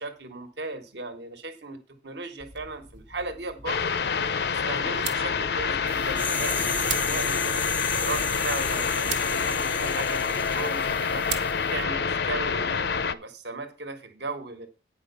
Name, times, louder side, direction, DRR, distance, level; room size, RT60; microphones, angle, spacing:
voice 1, 0.0-1.8 2.0-3.9 4.5-7.6 8.0-11.3 11.7-14.7, right 2 dB, 70° right, 8 dB, 1.3 m, -36 dB
sound 1, 2.4-12.8, right 8 dB, 90° right, 1.3 m, -41 dB
sound 2, 3.7-13.1, left 6 dB, 65° left, 0.6 m, -27 dB
sound 3, 5.9-11.5 11.8-11.9, left 3 dB, 10° left, 0.4 m, -34 dB
9.6 x 5.2 x 6.8 m, 0.33 s
head